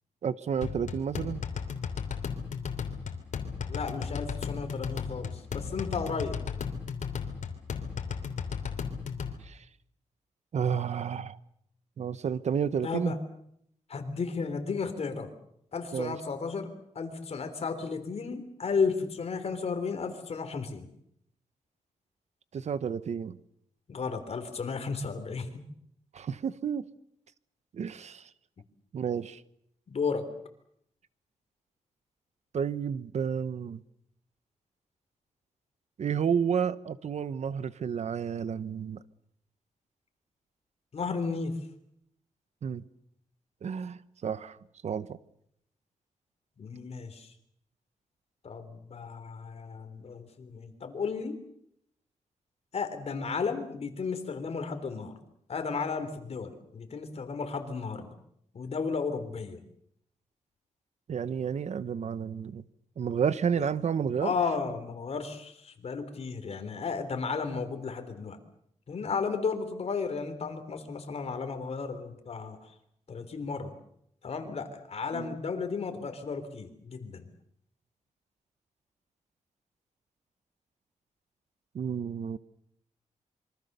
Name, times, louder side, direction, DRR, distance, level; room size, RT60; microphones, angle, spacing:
voice 1, 0.2-1.4 9.4-9.6 10.5-11.4 12.0-13.1 15.9-16.2 22.5-23.4 26.1-26.9 27.7-28.3 28.9-29.4 32.5-33.8 36.0-39.0 42.6-42.8 43.6-44.6 44.8-45.2 61.1-62.6 63.0-64.3 75.1-75.4 81.7-82.4, right 7 dB, 65° right, 1.0 m, -31 dB
sound 1, 0.6-9.3, left 6 dB, 80° left, 3.1 m, -35 dB
voice 2, 3.7-6.4 12.8-13.2 13.9-15.3 15.7-20.9 23.9-25.6 29.9-30.3 40.9-41.5 46.6-47.3 48.4-51.4 52.7-55.2 55.5-58.1 58.5-59.6 63.6-63.7 64.2-68.4 68.9-72.7 73.1-73.7 74.2-77.3, left 5 dB, 55° left, 3.5 m, -34 dB
26.5 x 24.0 x 6.8 m
wide cardioid pair, 120°, 13 cm